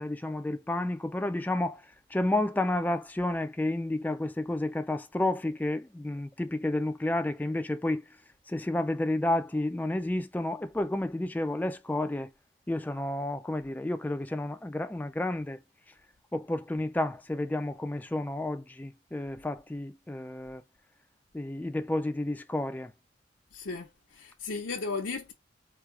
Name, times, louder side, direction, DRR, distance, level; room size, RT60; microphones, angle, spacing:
voice 1, 0.0-1.8 2.1-8.0 8.5-12.3 12.7-15.6 16.3-20.6 21.3-22.9, left 1 dB, 10° left, 0.3 m, -31 dB
voice 2, 23.5-25.3, left 4 dB, 85° left, 0.8 m, -35 dB
4.8 x 2.8 x 3.2 m
head